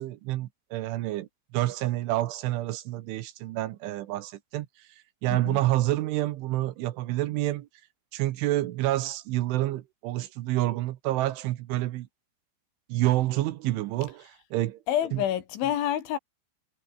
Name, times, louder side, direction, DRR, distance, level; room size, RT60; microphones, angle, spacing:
voice 1, 0.0-4.9 5.2-7.7 8.1-12.1 12.9-14.8 15.1-15.2, right 16 dB, 75° right, 3.3 m, -28 dB
voice 2, 14.9-16.2, left 11 dB, 70° left, 4.2 m, -28 dB
omnidirectional pair, 6.0 m